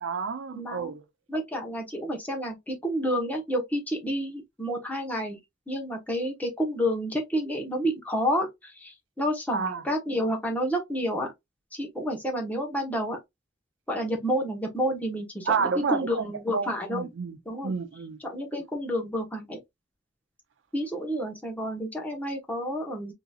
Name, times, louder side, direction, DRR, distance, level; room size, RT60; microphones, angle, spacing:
voice 1, 0.0-1.0 9.5-9.8 15.5-17.4 17.6-18.2, right 5 dB, 85° right, 0.5 m, -30 dB
voice 2, 0.5-0.9 1.3-5.4 5.7-11.3 11.7-13.2 13.9-17.1 17.4-17.7 18.2-19.6 20.7-23.1, equal, 10° left, 1.0 m, -30 dB
3.8 x 2.8 x 2.3 m
head